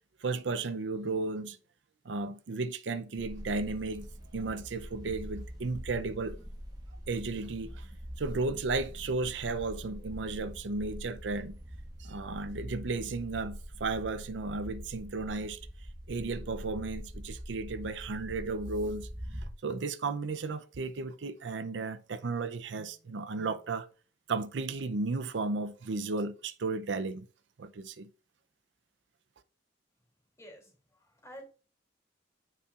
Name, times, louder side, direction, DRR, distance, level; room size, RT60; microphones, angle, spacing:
voice 1, 0.2-1.6 2.1-4.1 4.3-6.4 7.1-7.9 8.2-11.6 12.0-15.6 16.1-19.1 19.6-23.9 24.3-27.2 27.6-28.1, right 3 dB, 85° right, 0.6 m, -34 dB
sound 1, 3.2-19.5, equal, 20° right, 1.1 m, -44 dB
voice 2, 30.4-31.4, equal, 15° left, 2.7 m, -50 dB
9.4 x 5.4 x 2.4 m
head